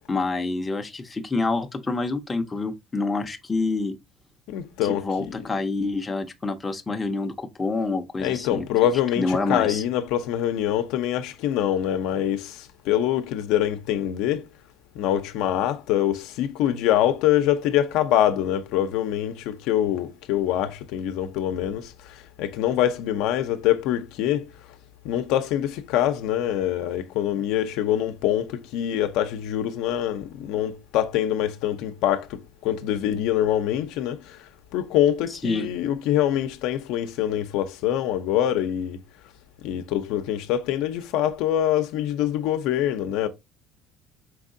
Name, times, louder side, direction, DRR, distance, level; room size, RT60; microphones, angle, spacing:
voice 1, 0.1-3.9 4.8-8.7 9.2-9.8 35.4-35.7, left 3 dB, 15° left, 0.5 m, -27 dB
voice 2, 4.5-5.4 8.2-14.5 15.0-24.5 25.0-39.0 39.6-43.3, left 11 dB, 75° left, 0.5 m, -24 dB
4.6 x 3.5 x 2.6 m
cardioid pair, 145°, 0 cm